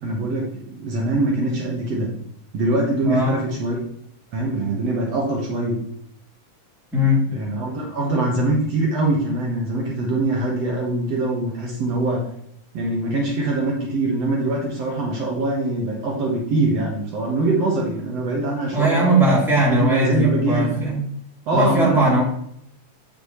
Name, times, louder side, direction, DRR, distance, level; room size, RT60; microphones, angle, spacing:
voice 1, 0.0-2.1 2.5-3.8 4.3-5.8 7.3-12.2 12.7-19.2 19.8-20.8 21.5-22.2, right 2 dB, 65° right, -2 dB, 2.2 m, -23 dB
voice 2, 3.0-3.4 6.9-7.3 18.7-21.1 21.5-22.2, equal, ahead, -6 dB, 2.5 m, -19 dB
8.4 x 6.1 x 3.1 m, 0.71 s
omnidirectional pair, 3.3 m